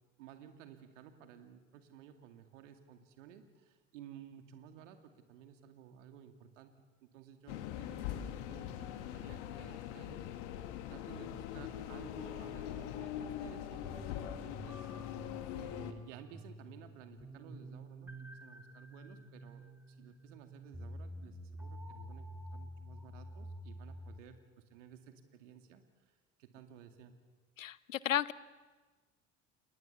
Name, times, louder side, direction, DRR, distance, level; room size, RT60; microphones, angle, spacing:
voice 1, 0.2-6.7 7.0-10.3 10.9-14.9 15.5-26.1 26.4-27.2, right 9 dB, 70° right, 6 dB, 2.5 m, -55 dB
sound 1, 7.5-15.9, left 11 dB, 65° left, 1.9 m, -42 dB
sound 2, 13.8-24.2, equal, 5° right, 4.6 m, -49 dB
voice 2, 27.6-28.3, left 11 dB, 80° left, 21 dB, 0.8 m, -33 dB
29.5 x 20.5 x 7.1 m, 1.3 s
figure-of-eight pair, 65°, 39 cm